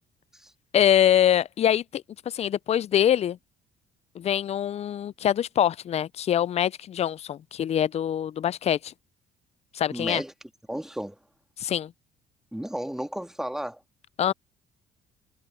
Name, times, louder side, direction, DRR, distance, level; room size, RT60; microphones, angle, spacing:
voice 1, 0.7-3.4 4.2-8.9 9.7-10.2 11.6-11.9 14.2-14.3, left 10 dB, 40° left, 0.4 m, -24 dB
voice 2, 9.9-10.3 10.7-11.2 12.5-13.8, equal, 5° right, 2.2 m, -33 dB
cardioid pair, 110°, 17 cm